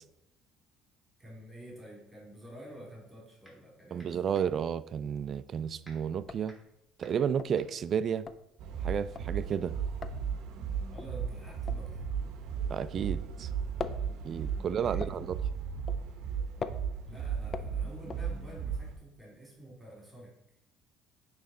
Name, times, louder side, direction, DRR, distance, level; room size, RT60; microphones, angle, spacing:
voice 1, 1.2-4.1 10.9-12.1 14.5-15.1 17.1-20.3, right 1 dB, 15° right, 2.3 m, -49 dB
sound 1, 3.4-3.7 4.0-9.0, equal, 5° left, 2.6 m, -60 dB
voice 2, 3.9-6.6 7.0-8.2 8.8-9.7 12.7-13.5 14.2-15.4, right 8 dB, 45° right, 0.3 m, -32 dB
sound 2, 5.0-5.4 5.7-5.8 6.1-13.2 13.4-18.8, left 5 dB, 35° left, 0.4 m, -43 dB
sound 3, 8.6-18.9, right 7 dB, 70° right, 0.7 m, -35 dB
9.0 x 3.2 x 3.8 m
supercardioid pair, 95°, 0 cm